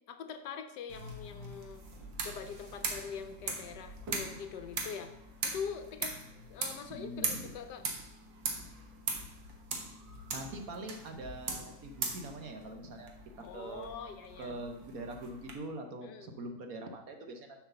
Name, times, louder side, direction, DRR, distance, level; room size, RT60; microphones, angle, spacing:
voice 1, 0.1-1.9 2.2-5.1 5.4-6.2 6.5-7.8 13.4-14.6 16.0-16.3, left 7 dB, 70° left, 8 dB, 1.3 m, -43 dB
sound 1, 0.9-15.5, right 4 dB, 80° right, 2.0 m, -41 dB
voice 2, 6.9-7.5 10.3-13.1 13.5-13.9 14.4-17.6, right 2 dB, 55° right, 5 dB, 1.3 m, -43 dB
7.4 x 4.8 x 6.7 m, 0.89 s
omnidirectional pair, 1.9 m